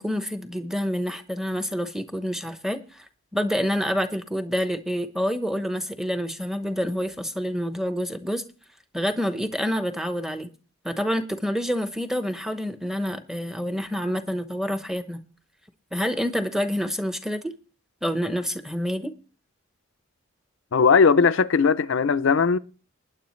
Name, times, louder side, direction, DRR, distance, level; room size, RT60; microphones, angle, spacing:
voice 1, 0.0-3.1 3.3-8.4 8.9-10.5 10.8-15.2 15.9-17.5 18.0-19.1, equal, ahead, 0.9 m, -27 dB
voice 2, 20.7-22.6, left 5 dB, 65° left, 0.5 m, -18 dB
20.0 x 9.9 x 3.1 m
head